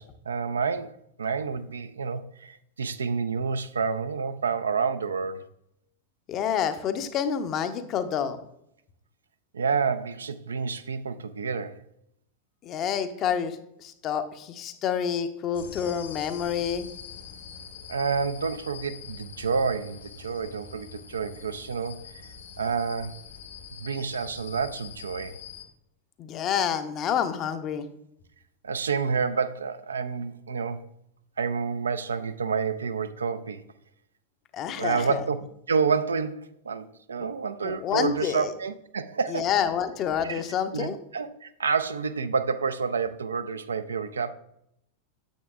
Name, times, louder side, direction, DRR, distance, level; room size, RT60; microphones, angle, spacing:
voice 1, 0.0-5.5 9.5-11.8 17.9-22.2 22.6-23.2 23.8-25.4 28.6-30.9 31.4-33.6 34.8-35.4 35.7-39.5 40.2-40.5 40.7-44.3, right 5 dB, 70° right, 0.4 m, -29 dB
voice 2, 6.3-8.4 12.6-16.9 26.2-27.9 34.5-35.2 37.6-38.5 39.3-41.0, left 8 dB, 35° left, 0.6 m, -28 dB
sound 1, 15.5-25.6, left 6 dB, 65° left, 1.6 m, -44 dB
9.1 x 7.6 x 2.3 m
figure-of-eight pair, 90°, 0 cm